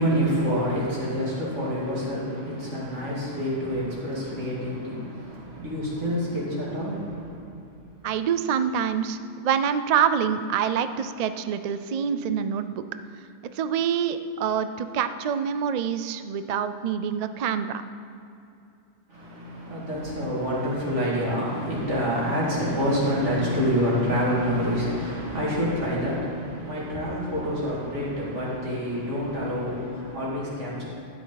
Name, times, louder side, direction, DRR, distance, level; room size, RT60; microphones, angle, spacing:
voice 1, 0.0-7.6 19.1-30.8, equal, 85° right, -7 dB, 2.9 m, -27 dB
voice 2, 8.0-12.8 13.5-17.8, right 8 dB, 65° right, 11 dB, 0.4 m, -26 dB
12.5 x 8.6 x 4.0 m, 2.6 s
omnidirectional pair, 1.2 m